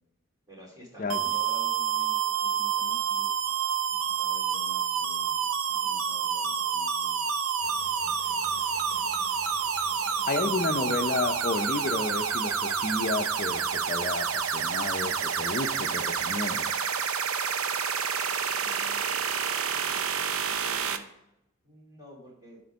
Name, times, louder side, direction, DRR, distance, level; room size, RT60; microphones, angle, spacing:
voice 1, 0.5-3.3 3.9-7.3 8.0-9.1 18.6-19.0 19.8-21.0 21.6-22.6, equal, 20° right, -4 dB, 3.2 m, -51 dB
sound 1, 1.1-21.0, right 7 dB, 85° right, 0.7 m, -28 dB
sound 2, 3.2-18.3, right 5 dB, 45° right, 1.4 m, -52 dB
Engine / Mechanisms, 7.6-16.4, equal, 5° left, 3.0 m, -52 dB
voice 2, 10.3-16.7, left 3 dB, 40° left, 7 dB, 0.7 m, -31 dB
12.5 x 4.5 x 5.2 m, 0.84 s
head